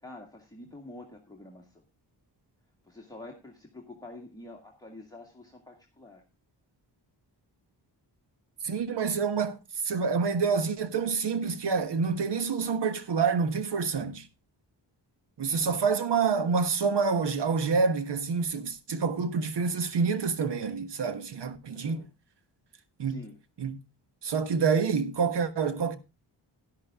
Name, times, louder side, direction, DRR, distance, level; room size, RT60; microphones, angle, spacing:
voice 1, 0.0-1.8 2.8-6.2 21.7-22.1 23.0-23.4, left 2 dB, 10° left, 1.9 m, -47 dB
voice 2, 8.6-9.6 9.8-14.3 15.4-22.0 23.0-23.3 23.6-23.8 24.2-26.0, right 5 dB, 70° right, 1.4 m, -27 dB
11.5 x 11.5 x 3.6 m
wide cardioid pair, 120°, 43 cm